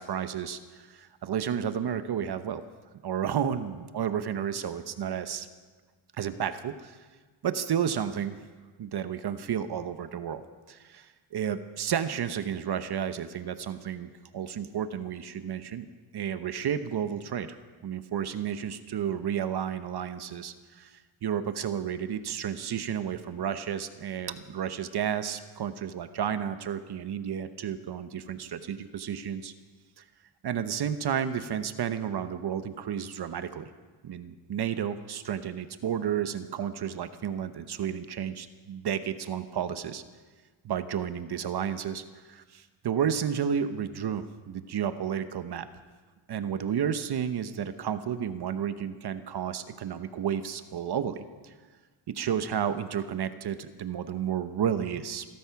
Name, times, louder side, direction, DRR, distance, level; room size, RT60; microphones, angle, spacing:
voice 1, 0.0-2.6 3.0-5.5 6.2-7.0 7.4-8.4 8.8-10.4 10.7-15.9 16.1-17.5 17.8-29.5 30.0-30.1 30.4-33.7 34.0-40.0 40.6-45.7 46.3-51.5 52.1-55.3, right 8 dB, 50° right, 11 dB, 1.0 m, -32 dB
17.0 x 13.0 x 5.9 m, 1.4 s
cardioid pair, 85°, 50 cm